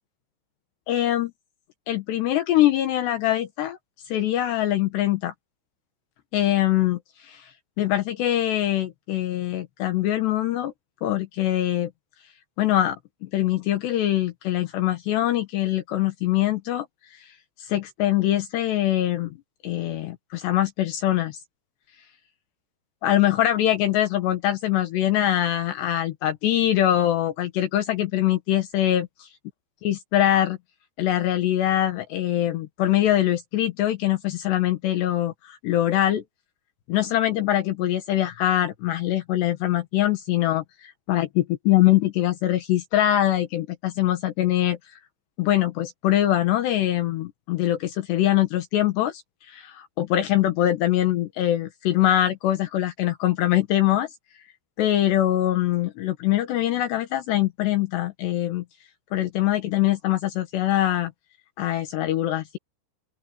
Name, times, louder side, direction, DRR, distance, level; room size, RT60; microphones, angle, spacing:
voice 1, 0.9-1.3 1.9-3.8 4.1-5.3 6.3-7.5 7.8-10.7 11.0-11.9 12.6-16.9 17.1-17.3 17.6-19.4 19.6-21.4 23.0-29.1 29.8-30.6 31.0-36.2 36.9-44.8 45.4-54.1 54.8-58.6 59.1-61.1 61.6-62.6, left 13 dB, 70° left, 3.3 m, -23 dB
open air
omnidirectional pair, 5.4 m